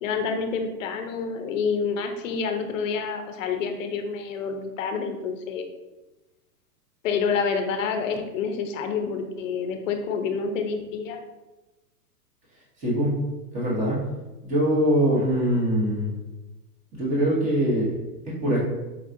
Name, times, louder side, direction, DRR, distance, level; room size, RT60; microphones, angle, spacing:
voice 1, 0.0-5.7 7.0-11.2, left 5 dB, 55° left, 6 dB, 0.6 m, -28 dB
voice 2, 12.8-13.2 13.5-14.0 14.4-16.1 16.9-17.9 18.3-18.6, equal, 15° right, -6 dB, 0.9 m, -23 dB
4.5 x 2.4 x 2.5 m, 1.1 s
hypercardioid pair, 145°, 49 cm